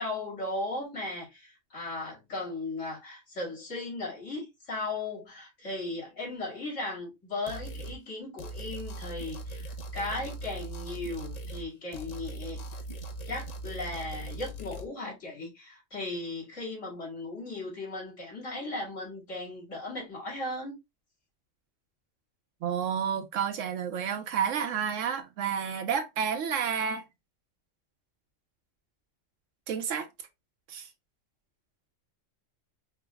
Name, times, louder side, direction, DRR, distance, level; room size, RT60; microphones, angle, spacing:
voice 1, 0.0-12.6 13.3-20.7, left 2 dB, 75° left, 2.7 m, -37 dB
sound 1, 7.5-8.0 8.4-11.7 11.9-14.9, right 2 dB, 45° left, 0.5 m, -40 dB
voice 2, 22.6-27.0 29.7-30.1 30.7-30.9, right 7 dB, 80° right, 1.1 m, -30 dB
4.7 x 2.0 x 3.3 m
omnidirectional pair, 1.3 m